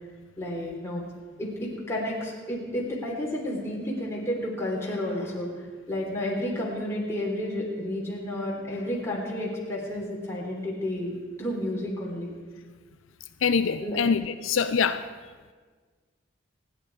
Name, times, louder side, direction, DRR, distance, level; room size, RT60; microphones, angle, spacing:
voice 1, 0.4-1.0 1.4-5.5 5.9-12.3 13.8-14.0, left 1 dB, 15° left, -4 dB, 3.7 m, -31 dB
voice 2, 13.4-15.0, left 6 dB, 75° left, 10 dB, 0.6 m, -24 dB
27.5 x 10.5 x 4.8 m, 1.5 s
head